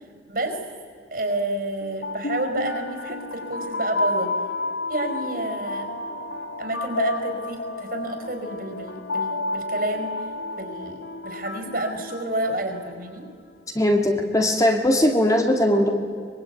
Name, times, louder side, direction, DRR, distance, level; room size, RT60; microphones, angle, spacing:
voice 1, 1.1-4.3 4.9-5.9 6.6-10.1 10.6-13.2, right 1 dB, 50° right, 5 dB, 4.7 m, -29 dB
sound 1, 1.8-12.9, left 2 dB, 75° left, 2.1 m, -31 dB
voice 2, 13.8-15.9, left 1 dB, 20° left, 4 dB, 2.0 m, -19 dB
24.0 x 22.5 x 9.3 m, 2.3 s
head